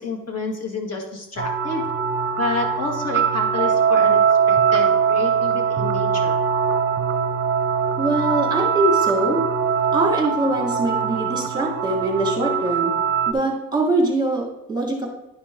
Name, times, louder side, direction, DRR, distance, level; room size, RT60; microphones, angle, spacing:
voice 1, 0.0-1.8 2.4-6.4, left 3 dB, 45° left, 1 dB, 1.9 m, -29 dB
sound 1, 1.4-13.3, right 7 dB, 35° right, 0.7 m, -21 dB
voice 2, 8.0-9.4 9.9-12.9 13.3-15.1, right 2 dB, 10° right, -1 dB, 1.7 m, -23 dB
11.0 x 5.1 x 3.7 m, 0.90 s
cardioid pair, 130°, 35 cm